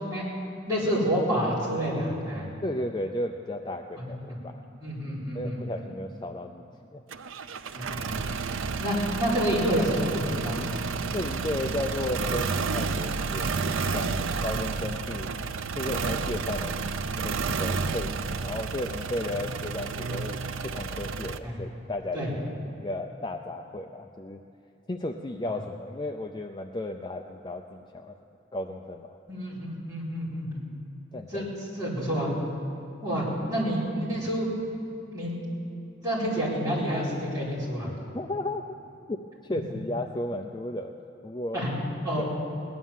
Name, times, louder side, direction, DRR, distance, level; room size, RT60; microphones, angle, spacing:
voice 1, 0.7-2.5 4.8-5.6 7.7-8.2 8.8-10.6 19.2-19.3 21.4-21.6 22.1-22.3 25.5-25.6 29.3-30.6 31.3-31.5 31.7-32.3 33.0-34.5 35.1-35.5 36.0-37.9 41.5-41.7 42.0-42.2, equal, 15° right, -8 dB, 4.6 m, -28 dB
voice 2, 2.6-4.6 5.3-6.6 6.9-7.0 11.1-15.3 15.8-16.8 17.2-18.1 18.4-20.4 20.6-22.3 22.8-24.4 24.9-28.2 28.5-29.2 31.1-31.5 38.1-38.6 39.1-39.2 39.4-40.9 41.2-41.6 42.2-42.3, left 1 dB, 20° left, 4 dB, 0.4 m, -34 dB
sound 1, 7.1-21.4, right 4 dB, 85° right, 0.6 m, -31 dB
17.5 x 11.0 x 7.3 m, 2.7 s
head